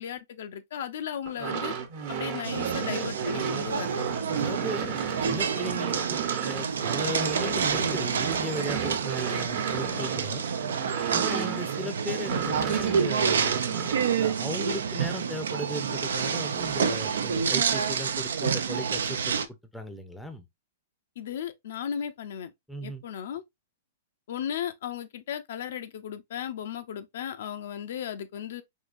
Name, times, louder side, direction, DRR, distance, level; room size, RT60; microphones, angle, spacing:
voice 1, 0.0-1.7 2.1-4.1 11.3-11.6 21.2-22.5 22.8-23.4 24.3-28.6, left 9 dB, 70° left, 0.5 m, -35 dB
sound 1, 1.3-11.9 12.2-14.2, right 7 dB, 55° right, 1.0 m, -33 dB
sound 2, 2.4-19.5, right 6 dB, 85° right, 0.4 m, -28 dB
voice 2, 4.4-10.4 11.1-13.6 14.2-19.3 19.7-20.5 22.7-23.0, equal, 5° left, 0.5 m, -37 dB
3.6 x 2.8 x 2.5 m
hypercardioid pair, 135°, 0 cm